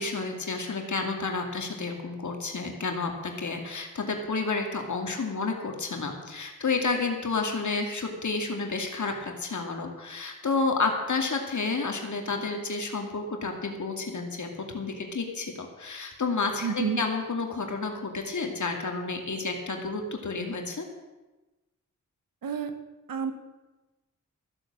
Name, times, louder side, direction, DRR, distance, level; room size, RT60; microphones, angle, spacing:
voice 1, 0.0-20.9, left 4 dB, 60° left, 3 dB, 2.4 m, -30 dB
voice 2, 16.6-17.0 22.4-22.7 23.1-23.3, right 6 dB, 80° right, 9 dB, 1.4 m, -29 dB
14.5 x 7.9 x 7.5 m, 1.1 s
cardioid pair, 50°, 33 cm